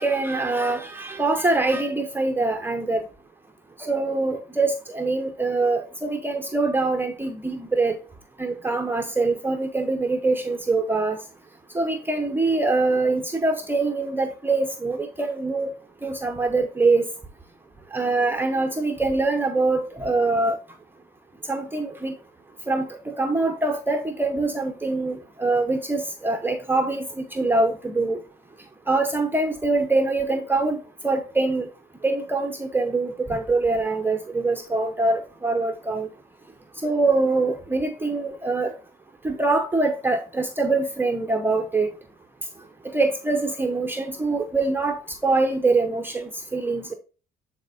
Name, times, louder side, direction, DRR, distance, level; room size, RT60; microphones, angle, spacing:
voice 1, 0.0-3.0 3.8-8.0 8.4-11.2 11.7-15.7 16.0-17.1 17.9-20.6 21.5-22.1 22.7-22.9 23.2-28.2 28.9-31.7 32.0-36.1 36.8-38.7 39.2-41.9 42.9-46.9, right 3 dB, 10° right, 0.8 m, -24 dB
9.2 x 4.3 x 2.5 m
cardioid pair, 110°, 17 cm